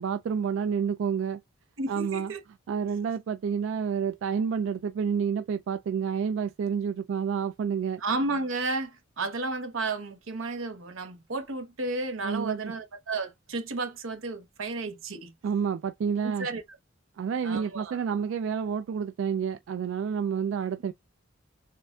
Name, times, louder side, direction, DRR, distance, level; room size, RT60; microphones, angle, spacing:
voice 1, 0.0-1.4 1.9-2.3 2.7-8.0 12.2-12.7 15.4-16.5 17.2-20.9, right 7 dB, 70° right, 0.3 m, -29 dB
voice 2, 1.8-2.4 8.0-15.3 16.4-16.6 17.4-18.0, right 3 dB, 90° right, 0.9 m, -32 dB
6.6 x 2.4 x 2.2 m
head